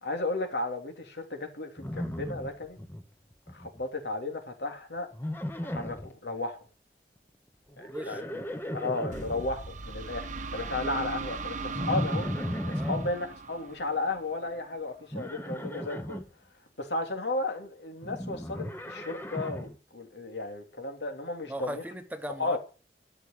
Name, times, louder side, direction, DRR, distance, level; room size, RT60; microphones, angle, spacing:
voice 1, 0.0-2.8 3.5-5.1 5.6-6.7 7.8-8.4 8.7-10.3 10.5-12.3 12.7-16.2 16.8-21.8 22.4-22.6, left 2 dB, 75° left, 3.0 m, -34 dB
Livestock farm animals working animals, 1.8-3.0 3.3-3.8 5.1-6.1 7.7-9.4 11.7-13.1 15.1-16.2 18.0-19.7, left 1 dB, 10° left, 1.1 m, -35 dB
voice 2, 7.9-8.4 12.7-12.9 21.5-22.6, equal, 10° right, 1.1 m, -39 dB
sound 1, 9.1-14.8, right 4 dB, 45° right, 1.1 m, -39 dB
12.5 x 6.4 x 8.8 m
head